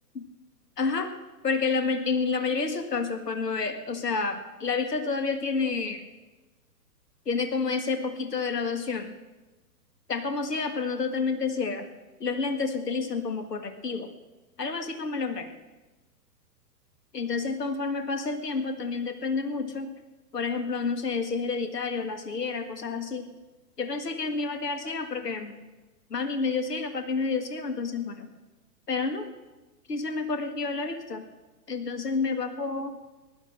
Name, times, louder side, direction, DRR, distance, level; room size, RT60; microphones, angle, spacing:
voice 1, 0.8-1.2 1.4-6.0 7.3-9.2 10.1-11.9 12.2-14.1 14.6-15.5 17.1-19.9 20.3-23.3 23.8-25.6 26.1-28.3 28.9-29.3 29.9-31.3 31.7-33.0, left 4 dB, 70° left, 8 dB, 1.8 m, -29 dB
16.0 x 11.0 x 6.2 m, 1.2 s
figure-of-eight pair, 115°, 50 cm